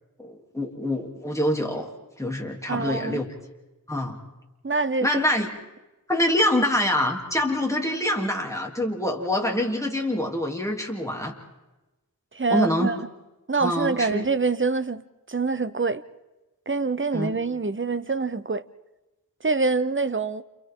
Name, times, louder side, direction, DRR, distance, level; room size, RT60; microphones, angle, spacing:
voice 1, 0.2-1.9 2.2-3.3 3.9-4.2 5.0-5.5 6.1-11.3 12.5-12.9 13.6-14.2 17.1-17.4, left 1 dB, 10° left, 3.1 m, -25 dB
voice 2, 2.7-3.2 4.6-5.2 12.3-13.0 13.5-16.0 16.7-18.6 19.4-20.4, right 4 dB, 35° right, 0.8 m, -25 dB
29.5 x 29.0 x 3.8 m
wide cardioid pair, 40°, 36 cm